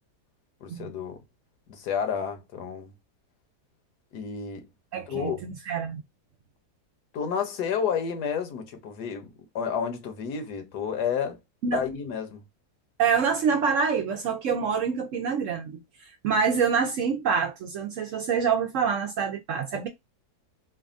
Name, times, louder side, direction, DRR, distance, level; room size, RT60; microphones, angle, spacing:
voice 1, 0.6-1.2 1.7-2.9 4.1-4.7 5.1-5.4 7.1-9.3 9.5-11.4 11.7-12.4, left 7 dB, 75° left, 1.3 m, -30 dB
voice 2, 4.9-6.0 11.6-11.8 13.0-19.9, right 6 dB, 70° right, 0.7 m, -26 dB
3.3 x 2.2 x 2.4 m
omnidirectional pair, 1.7 m